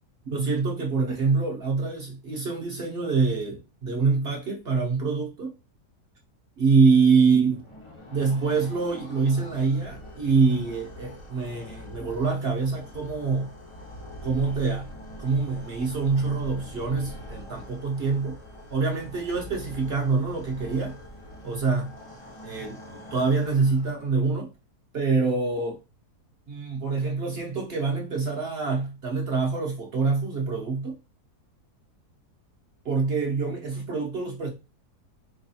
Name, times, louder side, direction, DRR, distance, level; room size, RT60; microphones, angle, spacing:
voice 1, 0.3-5.5 6.6-7.6 8.1-13.5 14.2-14.9 15.2-18.4 18.7-21.0 21.4-21.9 22.4-22.8 23.1-24.5 24.9-25.8 26.5-30.9 32.8-34.5, right 4 dB, 55° right, 0.7 m, -25 dB
sound 1, 7.3-24.3, equal, 55° left, 0.3 m, -43 dB
4.6 x 2.3 x 2.6 m
omnidirectional pair, 1.7 m